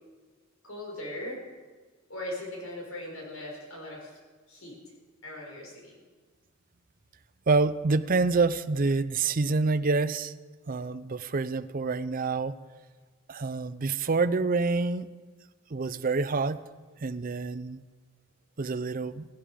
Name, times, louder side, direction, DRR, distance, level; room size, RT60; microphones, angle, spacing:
voice 1, 0.6-1.4 2.1-4.2 4.5-4.8 5.2-5.9, left 1 dB, 80° left, -2 dB, 5.7 m, -39 dB
voice 2, 7.5-10.3 10.7-12.6 13.3-15.1 15.7-16.6 17.0-17.8 18.6-19.3, right 3 dB, 40° right, 13 dB, 0.6 m, -27 dB
16.0 x 16.0 x 5.1 m, 1.4 s
head